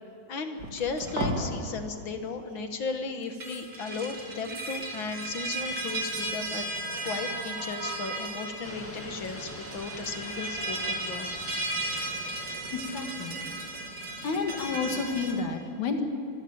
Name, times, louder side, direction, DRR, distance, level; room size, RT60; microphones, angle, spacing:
voice 1, 0.3-6.6 7.0-11.3 11.9-12.1, left 4 dB, 50° left, 6 dB, 1.9 m, -35 dB
sound 1, 0.6-1.4 3.2-15.3, right 2 dB, 35° right, 3.6 m, -35 dB
sound 2, 8.6-14.0, equal, 5° left, 1.1 m, -46 dB
voice 2, 12.9-13.4 14.2-16.0, left 4 dB, 80° left, 4 dB, 3.3 m, -30 dB
24.5 x 15.5 x 8.9 m, 2.5 s
omnidirectional pair, 3.3 m